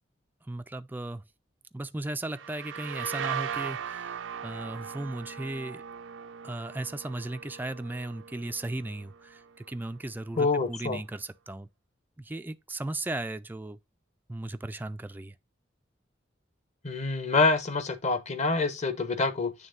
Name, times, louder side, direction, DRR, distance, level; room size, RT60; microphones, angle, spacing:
voice 1, 0.5-1.2 1.7-4.1 4.4-5.8 6.4-11.7 12.2-13.8 14.3-15.3, right 2 dB, 10° right, 0.4 m, -36 dB
sound 1, 2.3-9.9, right 7 dB, 90° right, 0.6 m, -39 dB
voice 2, 10.4-11.0 16.8-19.5, left 3 dB, 40° left, 1.0 m, -26 dB
9.1 x 3.5 x 3.8 m
head